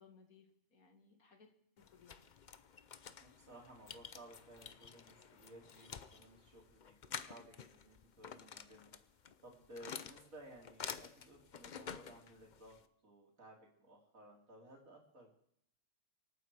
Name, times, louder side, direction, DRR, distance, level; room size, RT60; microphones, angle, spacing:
voice 1, 0.0-2.2, left 5 dB, 80° left, 4 dB, 2.5 m, -64 dB
sound 1, 1.8-12.9, left 7 dB, 45° left, 0.6 m, -50 dB
voice 2, 3.2-12.8 13.0-15.3, right 1 dB, 70° right, -1 dB, 3.6 m, -58 dB
25.0 x 9.2 x 4.8 m, 0.69 s
omnidirectional pair, 1.5 m